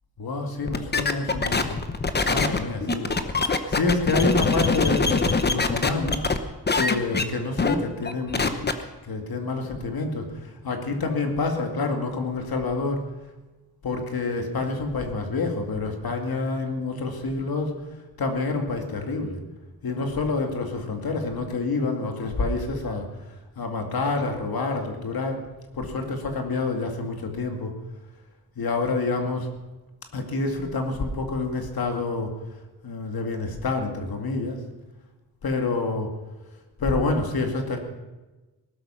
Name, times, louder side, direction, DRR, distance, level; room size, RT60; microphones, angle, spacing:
voice 1, 0.2-1.8 2.2-3.1 3.4-6.2 6.7-8.5 9.0-13.0 13.8-17.7 18.2-19.4 19.8-23.1 23.6-25.4 25.7-27.7 28.6-29.5 30.1-32.3 32.8-34.6 35.4-36.1 36.8-37.8, left 3 dB, 65° left, 4 dB, 2.3 m, -27 dB
sound 1, 0.7-6.4 6.7-7.2 7.6-7.7 8.0-8.7, left 4 dB, 25° left, 0.9 m, -23 dB
19.0 x 12.5 x 5.7 m, 1.2 s
wide cardioid pair, 175°, 40 cm